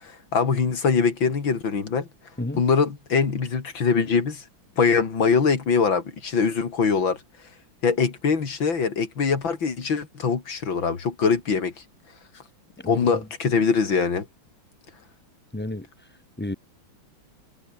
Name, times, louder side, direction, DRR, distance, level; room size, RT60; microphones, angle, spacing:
voice 1, 0.0-2.1 2.6-4.4 4.8-7.2 7.8-11.7 12.8-14.3, left 5 dB, 85° left, 3.6 m, -23 dB
voice 2, 12.8-13.2 15.5-15.8 16.4-16.5, left 1 dB, 10° left, 0.5 m, -30 dB
omnidirectional pair, 2.1 m